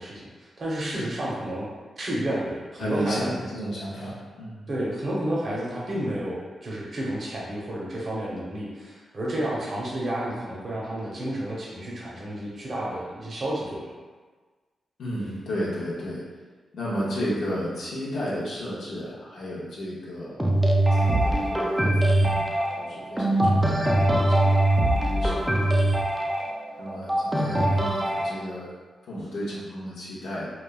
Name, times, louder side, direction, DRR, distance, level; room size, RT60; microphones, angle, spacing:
voice 1, 0.0-1.7 2.0-3.3 4.7-13.9, right 1 dB, 50° right, -5 dB, 0.6 m, -31 dB
voice 2, 2.8-4.7 15.0-16.2 16.7-20.4 20.9-26.0 26.8-28.7 29.1-30.5, equal, 80° left, -7 dB, 0.6 m, -33 dB
sound 1, 20.4-28.3, right 1 dB, 10° right, 0.3 m, -22 dB
3.0 x 2.1 x 2.2 m, 1.4 s
cardioid pair, 85°, 0 cm